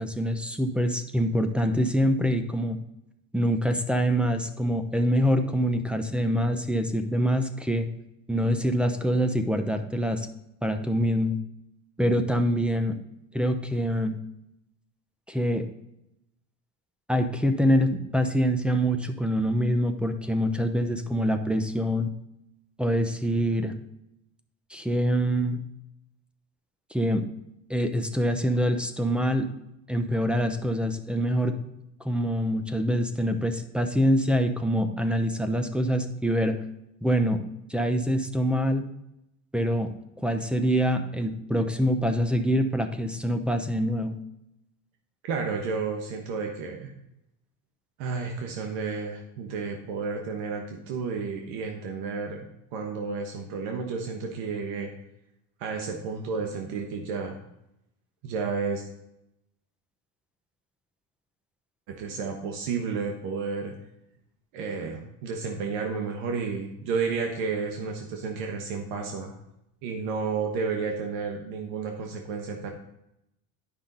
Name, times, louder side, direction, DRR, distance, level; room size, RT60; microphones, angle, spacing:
voice 1, 0.0-2.8 3.3-7.9 8.3-10.3 10.6-11.4 12.0-12.9 13.3-14.2 15.3-15.6 17.1-22.1 22.8-23.7 24.7-25.6 26.9-27.2 27.7-29.5 29.9-31.5 32.0-36.6 37.0-37.4 37.7-38.8 39.5-39.9 40.2-44.2, equal, ahead, 7 dB, 0.8 m, -25 dB
voice 2, 45.2-46.9 48.0-54.9 55.6-57.4 58.2-58.9 61.9-63.7 64.5-69.4 69.8-72.7, right 5 dB, 90° right, 2 dB, 1.2 m, -31 dB
10.0 x 5.7 x 3.9 m, 0.85 s
cardioid pair, 110°, 44 cm